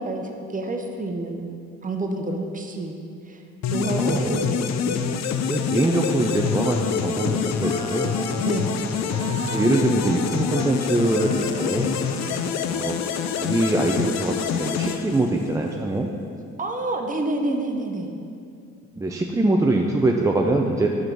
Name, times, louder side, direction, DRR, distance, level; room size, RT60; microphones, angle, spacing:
voice 1, 0.0-1.4 1.8-3.0 3.3-3.4 3.7-5.1 8.4-8.8 12.2-12.5 16.6-18.1, right 2 dB, 25° right, 3 dB, 0.7 m, -28 dB
sound 1, 3.6-15.7, left 7 dB, 65° left, 0.5 m, -26 dB
voice 2, 4.0-4.4 5.4-8.2 9.0-12.0 12.7-13.1 13.4-16.1 19.0-20.9, right 2 dB, 10° right, 1 dB, 0.3 m, -23 dB
Wind instrument woodwind instrument, 5.7-6.8 7.1-7.4 7.6-12.9, equal, 15° left, 1.4 m, -36 dB
6.1 x 5.2 x 4.5 m, 2.5 s
cardioid pair, 90°, 30 cm